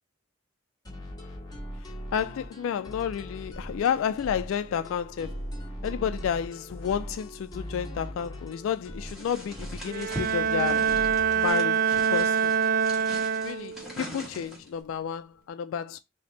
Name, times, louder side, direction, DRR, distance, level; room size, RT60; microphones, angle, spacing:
sound 1, 0.8-11.5, equal, 20° left, 1.3 m, -40 dB
voice 1, 2.1-5.4 5.8-11.0 11.3-12.5 13.4-16.0, left 8 dB, 75° left, 0.3 m, -31 dB
sound 2, 9.1-14.8, equal, ahead, 1.3 m, -42 dB
Bowed string instrument, 9.8-13.9, right 7 dB, 45° right, 0.3 m, -25 dB
3.5 x 2.8 x 3.8 m
head